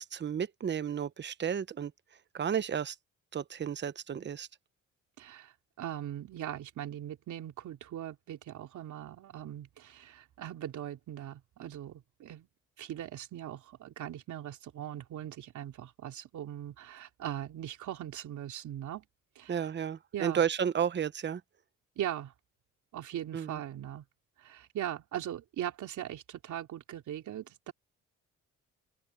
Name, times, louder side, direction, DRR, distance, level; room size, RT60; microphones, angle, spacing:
voice 1, 0.0-1.9 2.3-3.0 3.3-4.5 19.5-21.4 23.3-23.6, right 8 dB, 35° right, 0.9 m, -32 dB
voice 2, 5.2-12.5 12.8-19.0 19.4-19.6 20.1-20.4 22.0-22.3 22.9-24.0 24.4-27.7, right 11 dB, 75° right, 3.4 m, -40 dB
open air
cardioid pair, 90°, 30 cm